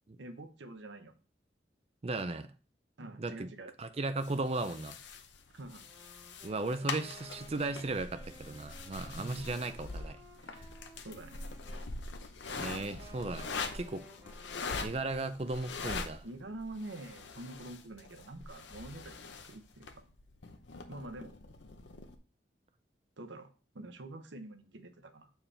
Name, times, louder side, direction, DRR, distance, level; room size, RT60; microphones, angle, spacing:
voice 1, 0.2-1.1 3.0-3.7 5.5-5.9 9.2-9.6 11.0-11.5 16.2-20.1 20.9-21.4 23.2-25.3, right 2 dB, 85° right, 0.8 m, -46 dB
voice 2, 2.0-2.5 3.0-3.5 3.8-5.0 6.4-10.2 10.5-10.7 12.5-13.5 13.7-14.1 14.8-16.2, right 2 dB, 35° right, 0.5 m, -36 dB
sound 1, 4.2-22.2, left 4 dB, 85° left, 0.8 m, -43 dB
Wind instrument woodwind instrument, 5.7-11.9 12.4-15.0, right 1 dB, 15° right, 2.7 m, -56 dB
7.3 x 4.6 x 3.3 m
head